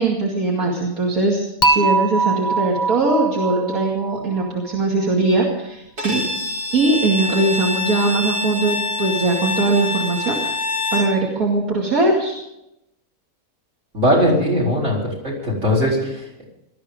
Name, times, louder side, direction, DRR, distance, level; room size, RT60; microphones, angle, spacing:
voice 1, 0.0-6.2 6.7-10.6 10.9-12.4, right 2 dB, 70° right, -2 dB, 2.8 m, -20 dB
Dishes pots and pans / Chink clink, 1.6-4.8, right 3 dB, 15° left, 1.2 m, -22 dB
Bowed string instrument, 6.0-11.2, left 2 dB, 85° right, 4.3 m, -25 dB
voice 2, 13.9-16.4, equal, 50° right, -2 dB, 5.0 m, -20 dB
19.0 x 13.0 x 5.2 m, 0.86 s
omnidirectional pair, 1.6 m